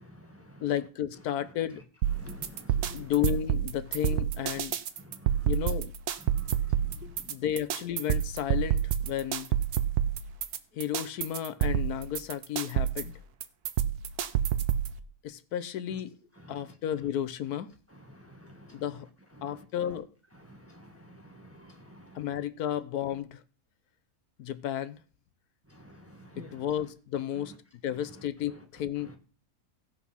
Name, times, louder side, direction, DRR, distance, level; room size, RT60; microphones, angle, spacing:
voice 1, 0.0-0.7 1.4-1.5 2.1-3.1 4.1-4.2 5.0-5.7 6.2-7.4 15.9-16.0 16.3-16.8 17.9-19.0 19.3-19.7 20.3-22.4 25.7-26.8 27.3-27.6 27.9-28.7 29.0-29.2, equal, 10° right, 1.1 m, -51 dB
voice 2, 0.6-1.8 2.9-4.7 5.5-5.9 7.3-9.5 10.7-13.1 15.2-16.1 16.5-17.7 18.7-19.1 19.4-20.1 22.1-23.4 24.4-25.0 26.4-27.6 27.8-29.2, left 10 dB, 80° left, 1.3 m, -33 dB
sound 1, 2.0-15.0, right 10 dB, 80° right, 1.3 m, -29 dB
16.0 x 5.9 x 5.6 m
omnidirectional pair, 1.6 m